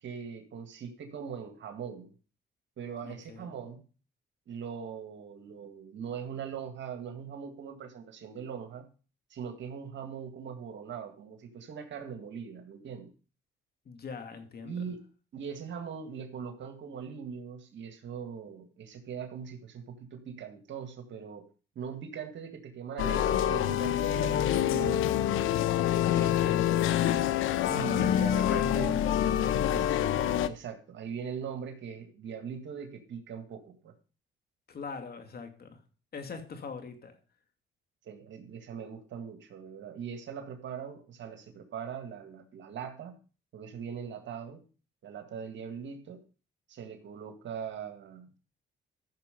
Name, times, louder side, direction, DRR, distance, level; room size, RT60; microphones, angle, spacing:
voice 1, 0.0-2.1 2.8-3.8 4.5-8.9 9.3-13.1 14.6-15.0 15.3-21.5 21.8-25.3 27.7-33.9 38.0-43.2 43.5-44.6 45.0-46.2 46.7-48.4, right 7 dB, 70° right, 1.9 m, -41 dB
voice 2, 3.0-3.6 13.8-14.9 26.1-27.4 28.0-29.4 34.7-35.8 36.1-37.2, left 5 dB, 50° left, 2.5 m, -41 dB
sound 1, 23.0-30.5, left 11 dB, 90° left, 0.8 m, -26 dB
14.5 x 6.6 x 5.3 m
cardioid pair, 90°, 20 cm